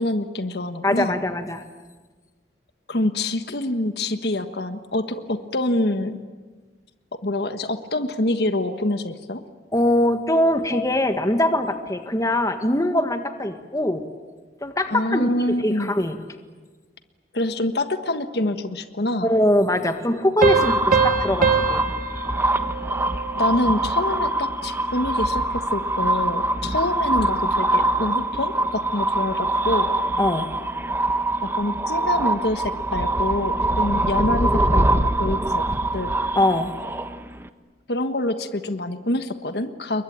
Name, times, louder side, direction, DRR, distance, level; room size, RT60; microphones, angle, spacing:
voice 1, 0.0-1.2 2.9-6.2 7.1-9.4 14.9-15.9 17.3-19.3 23.4-29.9 31.4-35.6 35.9-36.1 37.9-40.0, left 1 dB, 70° left, 8 dB, 1.4 m, -26 dB
voice 2, 0.8-1.6 9.7-14.0 14.6-16.2 19.2-21.8 30.2-30.5 36.3-36.7, left 1 dB, 20° left, 7 dB, 1.7 m, -22 dB
sound 1, 20.4-37.5, right 2 dB, 15° right, 1.0 m, -24 dB
Piano, 20.4-23.7, right 5 dB, 50° right, 1.5 m, -24 dB
29.0 x 22.5 x 8.9 m, 1.4 s
head